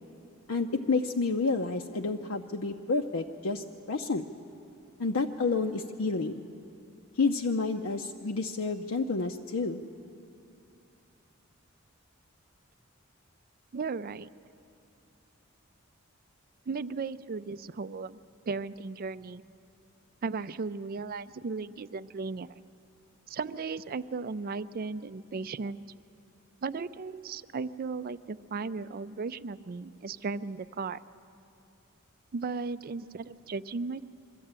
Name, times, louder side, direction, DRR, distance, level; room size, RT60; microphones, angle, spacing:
voice 1, 0.5-4.2 5.0-6.4 7.2-9.8, left 4 dB, 70° left, 3 dB, 0.6 m, -29 dB
voice 2, 13.7-14.3 16.7-18.2 18.5-19.4 20.2-22.5 23.3-25.8 26.6-31.0 32.3-34.0, right 4 dB, 45° right, 15 dB, 0.4 m, -36 dB
23.5 x 14.0 x 8.8 m, 2.7 s
head